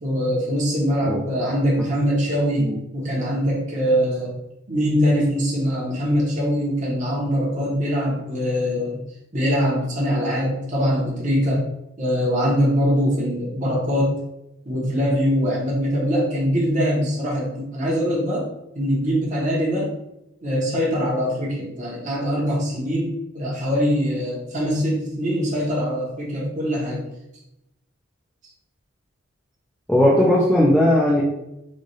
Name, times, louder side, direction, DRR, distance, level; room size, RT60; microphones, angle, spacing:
voice 1, 0.0-4.3 4.7-9.0 9.3-11.6 12.0-14.1 14.6-18.5 18.7-19.9 20.4-27.0, equal, 35° right, -4 dB, 1.0 m, -22 dB
voice 2, 29.9-31.2, left 1 dB, 5° left, -7 dB, 0.6 m, -17 dB
3.2 x 2.5 x 4.0 m, 0.87 s
head